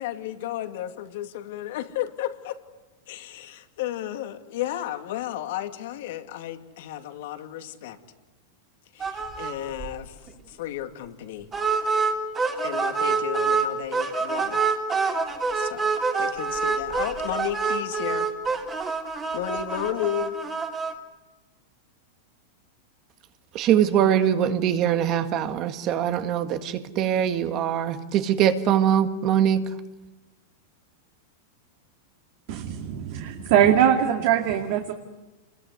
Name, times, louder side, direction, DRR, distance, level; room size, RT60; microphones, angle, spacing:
voice 1, 0.0-2.6 3.1-8.0 8.9-11.5 12.6-14.6 15.5-15.9 16.2-18.3 19.3-20.4, left 12 dB, 65° left, 6 dB, 2.4 m, -33 dB
sound 1, 9.0-9.5 9.8-9.9 10.3-10.4 11.5-13.7 13.9-20.9, right 4 dB, 20° right, 3.0 m, -26 dB
voice 2, 23.5-29.7, right 9 dB, 35° right, 9 dB, 1.8 m, -22 dB
voice 3, 32.5-34.9, right 10 dB, 55° right, 4 dB, 2.4 m, -21 dB
28.5 x 22.0 x 9.6 m, 1.1 s
supercardioid pair, 150°, 0 cm